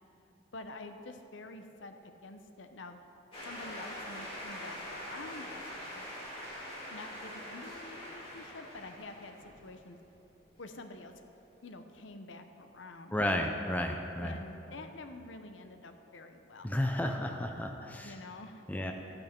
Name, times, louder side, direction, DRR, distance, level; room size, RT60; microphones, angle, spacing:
voice 1, 0.5-3.0 3.4-6.0 6.5-6.6 6.9-9.3 9.6-10.0 10.6-11.1 11.6-13.2 14.2-16.8 18.0-18.8, left 2 dB, 80° left, 7 dB, 0.8 m, -48 dB
sound 1, 3.3-10.1, equal, 30° left, 2.8 m, -44 dB
voice 2, 13.1-14.4 16.6-18.1 18.7-18.9, left 1 dB, 10° left, 3 dB, 0.6 m, -32 dB
14.0 x 8.8 x 4.4 m, 2.9 s
head